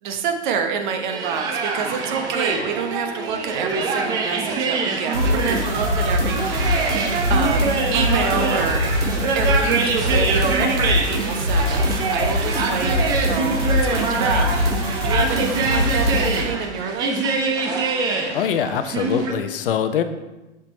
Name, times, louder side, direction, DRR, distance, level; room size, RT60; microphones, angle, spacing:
voice 1, 0.0-6.8 7.3-8.9 9.3-17.2, right 6 dB, 40° right, 5 dB, 1.1 m, -27 dB
sound 1, 1.1-19.3, right 4 dB, 10° right, 0.4 m, -24 dB
sound 2, 5.1-16.4, left 1 dB, 85° right, 2.2 m, -23 dB
voice 2, 18.3-20.0, left 8 dB, 50° left, 10 dB, 0.7 m, -23 dB
7.0 x 5.8 x 4.3 m, 1.0 s
figure-of-eight pair, 110°, 35 cm